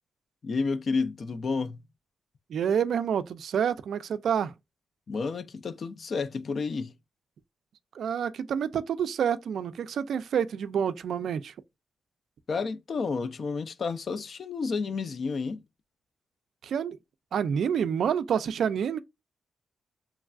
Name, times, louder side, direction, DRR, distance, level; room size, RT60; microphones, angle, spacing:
voice 1, 0.4-1.8 5.1-6.9 12.5-15.6, left 4 dB, 55° left, 0.4 m, -30 dB
voice 2, 2.5-4.5 7.9-11.5 16.6-17.0 17.3-19.0, right 8 dB, 80° right, 0.3 m, -28 dB
3.2 x 2.3 x 2.4 m
cardioid pair, 95°, 0 cm